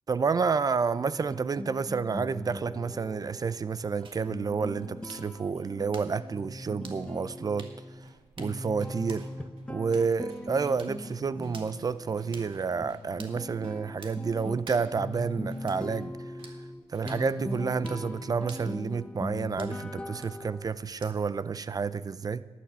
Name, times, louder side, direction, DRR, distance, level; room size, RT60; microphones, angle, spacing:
voice 1, 0.1-7.7 8.4-9.3 9.7-16.1 16.9-22.4, right 5 dB, 35° right, 16 dB, 0.5 m, -30 dB
sound 1, 0.9-20.8, left 1 dB, 10° left, 0.7 m, -40 dB
sound 2, 4.0-21.4, right 4 dB, 55° right, 1.7 m, -54 dB
sound 3, 6.9-16.1 16.4-16.6 16.9-17.1 17.5-17.7 18.0-18.2, right 2 dB, 80° right, 2.3 m, -58 dB
11.5 x 9.3 x 6.8 m, 1.3 s
cardioid pair, 75°, 11 cm